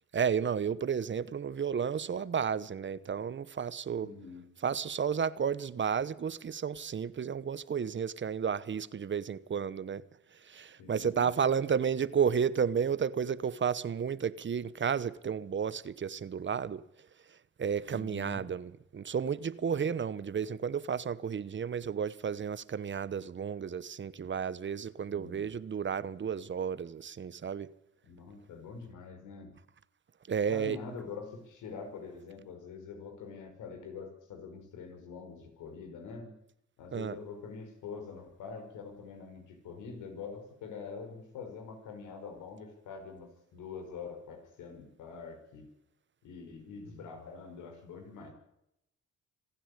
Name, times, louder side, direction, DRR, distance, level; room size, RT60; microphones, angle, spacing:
voice 1, 0.1-4.1 4.6-10.0 10.4-16.8 17.6-27.7 30.3-30.8 36.9-37.2, right 7 dB, 40° right, 1.0 m, -32 dB
voice 2, 4.0-4.5 10.8-11.4 17.9-18.5 25.1-25.5 28.1-29.5 30.5-36.4 36.8-45.7 46.2-48.3, left 5 dB, 90° left, 5.4 m, -45 dB
26.5 x 10.0 x 9.9 m
cardioid pair, 90°, 30 cm